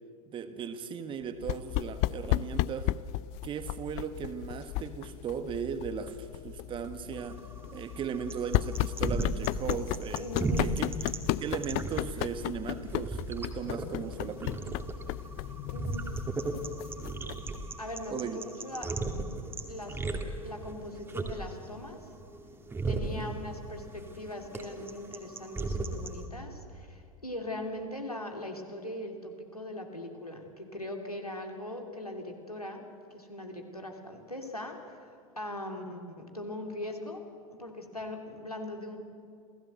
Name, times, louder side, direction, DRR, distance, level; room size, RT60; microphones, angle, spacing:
voice 1, 0.3-2.9 3.4-7.4 7.7-10.3 10.6-11.1 11.4-14.8 18.1-18.4 23.0-23.4, right 7 dB, 25° right, 10 dB, 1.6 m, -37 dB
sound 1, 1.4-17.6, left 16 dB, 40° left, 0.5 m, -34 dB
sound 2, 7.2-26.2, right 2 dB, 10° right, 2.3 m, -36 dB
voice 2, 10.2-10.6 15.7-16.0 17.8-18.9 19.7-22.0 22.9-32.8 33.1-37.2 37.5-39.0, left 1 dB, 90° left, 3 dB, 3.0 m, -40 dB
28.0 x 17.0 x 7.9 m, 2.4 s
figure-of-eight pair, 90°, 19 cm